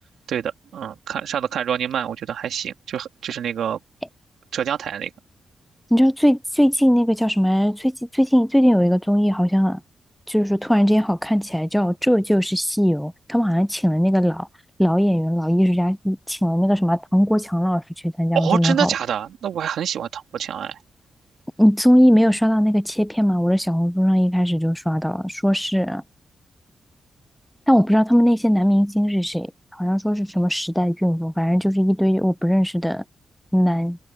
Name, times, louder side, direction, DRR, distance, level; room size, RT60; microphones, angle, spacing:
voice 1, 0.3-3.8 4.5-5.1 18.3-20.8, right 9 dB, 85° right, 2.8 m, -26 dB
voice 2, 5.9-9.8 10.3-14.5 14.8-18.9 21.6-26.0 27.7-33.0 33.5-34.0, equal, ahead, 0.4 m, -19 dB
cardioid pair, 105°, 0 cm